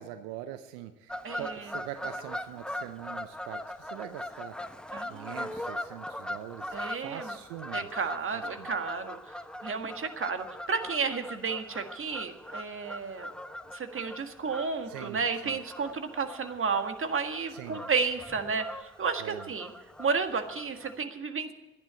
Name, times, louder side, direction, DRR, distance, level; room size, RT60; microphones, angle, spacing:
voice 1, 0.0-4.6 5.0-7.9 8.3-8.7 14.9-15.6 17.5-17.9 19.2-19.4, right 12 dB, 85° right, 10 dB, 0.6 m, -43 dB
Fowl / Bird vocalization bird call bird song, 1.1-21.0, left 1 dB, 5° left, 1.0 m, -41 dB
voice 2, 1.2-1.7 4.9-5.4 6.7-7.4 7.7-9.2 9.6-13.3 13.7-19.7 20.0-21.5, right 5 dB, 45° right, 7 dB, 1.8 m, -32 dB
12.0 x 10.5 x 8.3 m, 1.2 s
hypercardioid pair, 50°, 30 cm